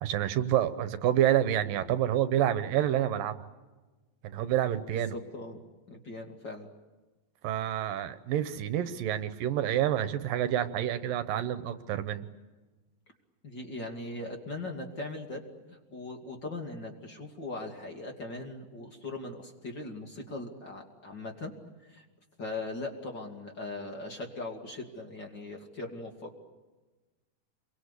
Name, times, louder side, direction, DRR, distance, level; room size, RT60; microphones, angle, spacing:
voice 1, 0.0-3.3 4.2-5.2 7.4-12.3, right 11 dB, 75° right, 11 dB, 2.6 m, -28 dB
voice 2, 5.1-5.6 5.9-6.7 13.4-15.4 15.7-21.5 21.8-22.0 22.4-26.4, left 2 dB, 35° left, 2 dB, 2.7 m, -40 dB
29.0 x 23.5 x 8.2 m, 1.2 s
omnidirectional pair, 4.2 m